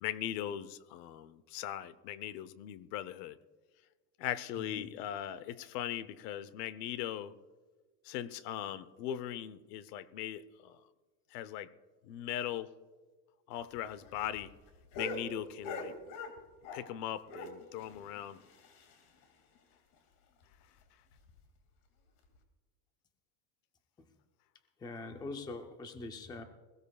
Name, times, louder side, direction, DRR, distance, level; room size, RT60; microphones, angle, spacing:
voice 1, 0.0-3.4 4.2-7.3 8.0-10.8 11.3-11.7 12.0-12.7 13.5-14.5 15.0-16.0 16.7-18.4, left 11 dB, 85° left, 16 dB, 0.9 m, -39 dB
sound 1, 13.5-17.0 17.3-19.3 19.6-19.7 19.9-20.0 20.4-20.5 21.1-21.4 22.2-22.4, left 3 dB, 65° left, 2.4 m, -44 dB
voice 2, 24.8-26.4, left 3 dB, 10° left, 6 dB, 0.5 m, -43 dB
21.0 x 16.0 x 2.3 m, 1.3 s
cardioid pair, 165°, 47 cm